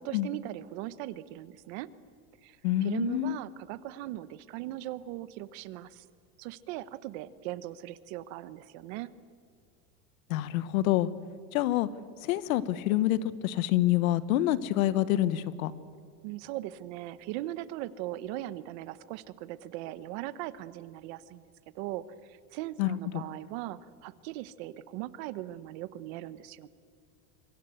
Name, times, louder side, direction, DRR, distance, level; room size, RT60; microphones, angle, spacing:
voice 1, 0.0-1.9 2.4-6.0 6.4-9.1 16.2-21.4 21.7-26.7, right 15 dB, 50° right, 16 dB, 1.0 m, -39 dB
voice 2, 2.6-3.4 10.3-11.1 11.5-11.9 12.2-15.7 22.8-23.2, left 14 dB, 80° left, 16 dB, 1.3 m, -27 dB
27.0 x 24.0 x 8.1 m, 2.1 s
supercardioid pair, 170°, 41 cm